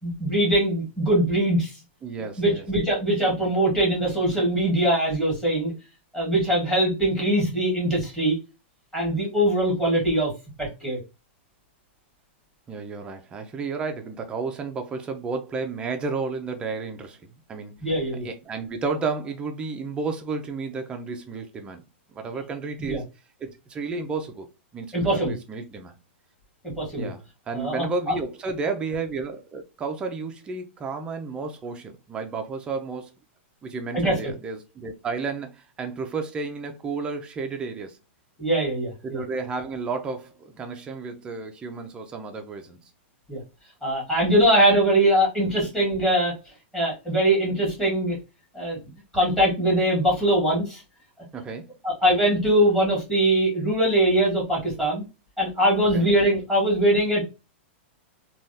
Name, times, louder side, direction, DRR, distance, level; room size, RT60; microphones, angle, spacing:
voice 1, 0.0-1.7 2.4-5.7 6.1-8.3 8.9-10.3 10.6-11.0 17.8-18.2 22.9-23.0 24.9-25.3 26.8-27.1 27.5-27.8 33.9-34.1 38.4-39.2 43.3-43.4 43.8-46.3 46.7-48.1 48.5-48.8 49.1-50.8 51.8-55.0 55.4-57.2, right 1 dB, 5° left, 1.8 m, -22 dB
voice 2, 2.0-2.7 12.7-21.9 22.1-23.0 23.4-24.5 24.7-26.0 27.0-33.1 33.6-38.0 39.0-42.9 45.6-45.7 51.3-51.7 55.9-56.1, right 4 dB, 15° right, 0.5 m, -32 dB
3.4 x 2.3 x 2.7 m
hypercardioid pair, 155°, 7 cm